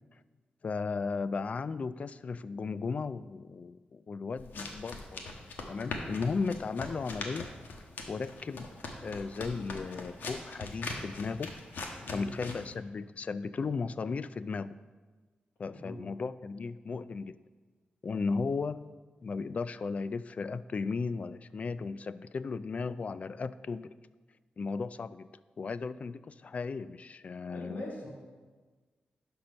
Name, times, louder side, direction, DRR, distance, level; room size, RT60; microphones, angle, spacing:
voice 1, 0.6-5.4 5.7-7.5 8.1-8.7 9.0-11.5 12.1-14.8 15.6-17.4 18.0-18.9 19.2-24.0 24.6-25.3 25.6-27.8, left 4 dB, 45° left, 16 dB, 0.3 m, -35 dB
sound 1, 4.4-12.7, left 3 dB, 80° left, 1.1 m, -41 dB
voice 2, 12.0-12.4 15.7-16.0 27.4-28.1, left 1 dB, 65° left, -3 dB, 1.9 m, -42 dB
11.5 x 4.5 x 5.3 m, 1.4 s
wide cardioid pair, 100°, 3 cm